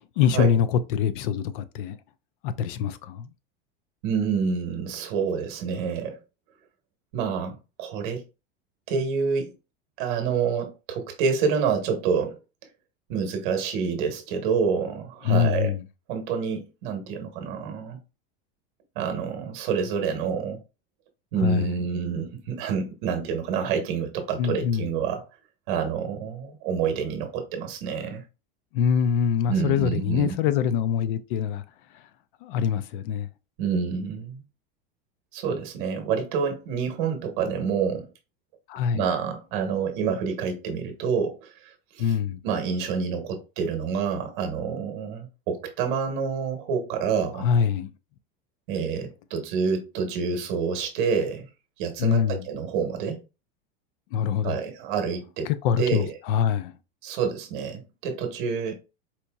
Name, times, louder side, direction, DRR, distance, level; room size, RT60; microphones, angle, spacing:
voice 1, 0.2-2.0 2.4-3.3 15.2-15.8 21.4-21.8 24.4-24.9 28.7-31.6 32.4-33.3 38.7-39.1 42.0-42.4 47.4-47.9 52.0-52.5 54.1-54.6 55.5-56.7, left 7 dB, 60° left, 0.5 m, -24 dB
voice 2, 4.0-6.2 7.1-8.2 8.9-9.5 10.0-12.4 13.1-15.8 16.1-18.0 18.9-20.6 21.3-25.2 25.7-28.2 29.5-30.3 33.6-34.4 35.3-38.1 38.9-42.1 42.4-47.5 48.7-51.5 51.8-53.2 54.4-55.5 55.8-56.2 57.0-58.7, right 6 dB, 55° right, 1.0 m, -28 dB
4.3 x 2.6 x 2.3 m
supercardioid pair, 165°, 29 cm